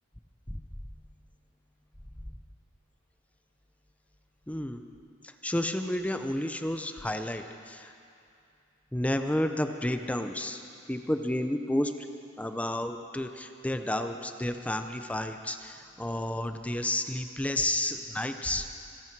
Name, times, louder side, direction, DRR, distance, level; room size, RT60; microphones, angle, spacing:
voice 1, 4.5-4.8 5.4-7.9 8.9-10.6 10.9-11.9 12.4-18.7, left 1 dB, 5° left, 7 dB, 0.5 m, -31 dB
25.0 x 11.5 x 4.6 m, 2.6 s
head